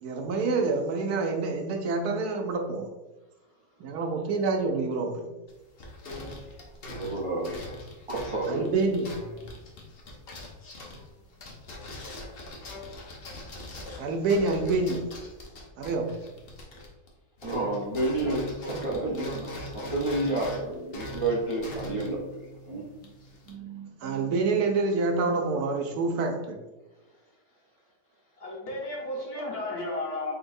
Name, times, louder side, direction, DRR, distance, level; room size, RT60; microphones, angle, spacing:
voice 1, 0.0-2.9 3.8-5.2 8.5-9.1 14.0-15.0 15.8-16.1 23.5-26.6, right 3 dB, 80° right, 3 dB, 1.2 m, -27 dB
sound 1, 5.5-17.1 17.4-23.5, left 1 dB, 50° left, 0.8 m, -42 dB
voice 2, 7.0-7.6 8.1-8.7 17.4-22.2 22.7-22.8, right 2 dB, 50° right, -5 dB, 0.3 m, -30 dB
voice 3, 28.4-30.3, left 2 dB, 75° left, -3 dB, 1.7 m, -33 dB
4.0 x 4.0 x 2.6 m, 1.1 s
omnidirectional pair, 1.6 m